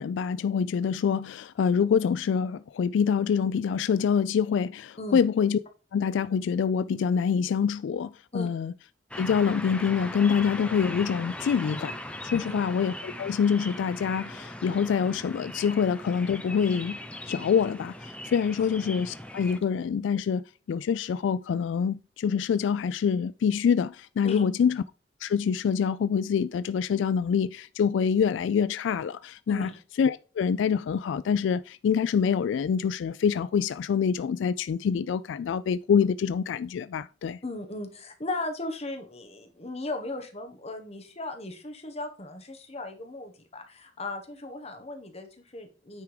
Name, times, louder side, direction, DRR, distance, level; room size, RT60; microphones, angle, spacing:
voice 1, 0.0-5.6 5.9-8.7 9.2-11.9 12.2-17.0 17.3-24.8 25.2-29.7 30.0-37.4, left 7 dB, 90° left, 0.3 m, -26 dB
sound 1, 9.1-19.6, left 1 dB, 5° left, 0.8 m, -39 dB
voice 2, 12.3-12.6 18.6-18.7 24.2-24.4 29.5-29.8 37.4-46.0, left 2 dB, 35° left, 1.3 m, -37 dB
9.3 x 3.6 x 4.8 m
head